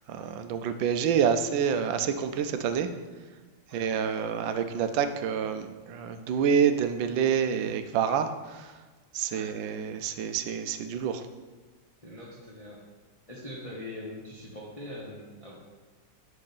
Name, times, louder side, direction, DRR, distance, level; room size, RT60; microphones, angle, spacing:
voice 1, 0.1-2.9 3.7-8.7 9.1-11.2, right 7 dB, 85° right, 9 dB, 1.4 m, -27 dB
voice 2, 3.7-4.7 9.3-9.6 12.0-12.8 13.3-15.5, left 1 dB, 25° left, -4 dB, 1.0 m, -43 dB
10.0 x 3.8 x 5.4 m, 1.3 s
omnidirectional pair, 2.0 m